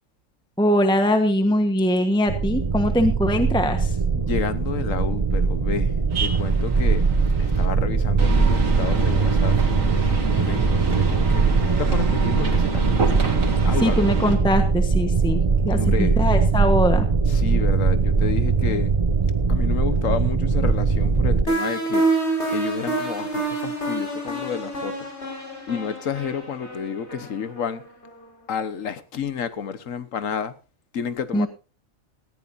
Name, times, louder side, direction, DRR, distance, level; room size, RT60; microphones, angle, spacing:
voice 1, 0.6-4.0 13.8-17.1 31.3-31.5, equal, 5° left, 1.1 m, -22 dB
sound 1, 2.3-21.5, right 4 dB, 30° right, 0.7 m, -21 dB
voice 2, 4.1-7.0 7.4-9.6 10.3-13.0 13.6-14.1 15.7-16.2 17.3-18.9 19.5-22.1 22.5-25.0 25.7-27.8 28.5-30.5 30.9-31.5, left 7 dB, 85° left, 1.5 m, -30 dB
sound 2, 6.1-7.7 8.2-14.4, right 4 dB, 85° right, 2.5 m, -28 dB
sound 3, 21.5-28.2, right 2 dB, 55° left, 5.3 m, -27 dB
18.5 x 14.5 x 2.7 m
omnidirectional pair, 1.3 m